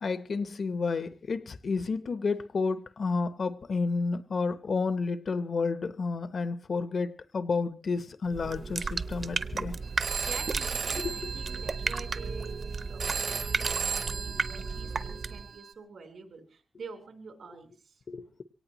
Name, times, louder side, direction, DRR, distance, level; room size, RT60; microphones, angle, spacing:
voice 1, 0.0-9.7 11.0-11.3 18.1-18.4, left 4 dB, 55° left, 0.8 m, -31 dB
sound 1, 8.3-15.5, right 4 dB, 50° right, 0.7 m, -34 dB
Telephone, 9.8-15.7, right 6 dB, 70° right, 1.0 m, -36 dB
voice 2, 10.2-18.0, right 4 dB, 90° right, 3.7 m, -47 dB
23.5 x 18.0 x 3.0 m
wide cardioid pair, 170°, 0 cm